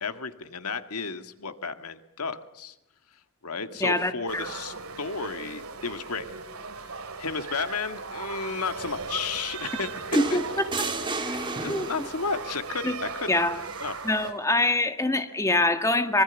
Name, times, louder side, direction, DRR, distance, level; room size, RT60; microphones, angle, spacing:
voice 1, 0.0-2.8 3.4-6.3 7.2-9.9 10.3-10.4 11.3-13.4 13.8-13.9, left 4 dB, 85° left, 9 dB, 1.9 m, -33 dB
voice 2, 3.8-4.5 10.1-10.4 11.7-11.9 12.8-12.9 13.3-13.6 14.0-16.2, left 2 dB, 15° left, 8 dB, 1.7 m, -24 dB
sound 1, 4.3-14.3, right 4 dB, 75° right, 2.9 m, -38 dB
sound 2, 10.1-12.3 13.7-13.9, right 3 dB, 20° right, 2.6 m, -32 dB
25.0 x 23.5 x 7.2 m, 0.89 s
head